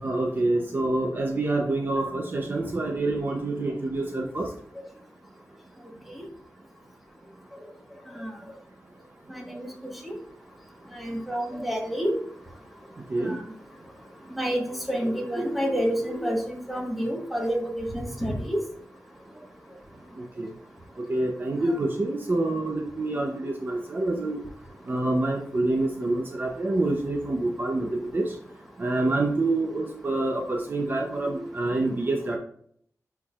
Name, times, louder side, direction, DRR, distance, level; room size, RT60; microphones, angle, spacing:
voice 1, 0.0-4.5 13.1-13.4 20.4-20.5 21.1-24.4 24.9-28.3 28.8-32.4, right 2 dB, 35° right, 2 dB, 0.7 m, -27 dB
voice 2, 9.3-9.7 10.0-10.1 10.9-12.1 13.2-13.4 14.3-18.6 21.7-21.8 31.2-31.6, equal, ahead, 0 dB, 1.4 m, -29 dB
9.6 x 4.7 x 2.4 m, 0.63 s
wide cardioid pair, 155°, 6 cm